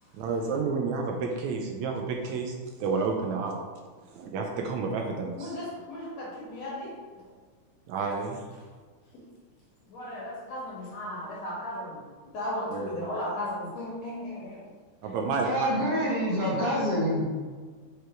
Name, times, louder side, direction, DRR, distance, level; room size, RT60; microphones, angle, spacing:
voice 1, 0.1-3.5 4.1-5.6 7.9-8.4 12.7-13.1 15.0-15.7, right 4 dB, 75° right, 2 dB, 1.8 m, -30 dB
voice 2, 5.4-6.9 9.9-12.0 12.3-14.6, left 1 dB, 55° left, -6 dB, 2.8 m, -35 dB
voice 3, 15.4-17.2, equal, 45° right, -7 dB, 3.1 m, -26 dB
6.7 x 5.0 x 4.5 m, 1.5 s
omnidirectional pair, 3.9 m